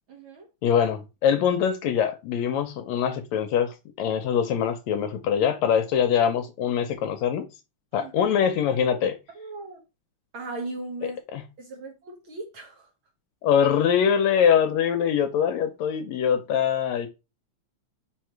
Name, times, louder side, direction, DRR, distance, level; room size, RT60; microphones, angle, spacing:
voice 1, 0.1-0.5 7.9-8.3 9.3-9.8 10.3-11.2 11.6-12.9, right 2 dB, 55° right, 1.7 m, -38 dB
voice 2, 0.6-7.5 7.9-9.2 11.3-11.4 13.4-17.1, left 8 dB, 75° left, 1.8 m, -23 dB
4.9 x 4.6 x 4.5 m
omnidirectional pair, 3.4 m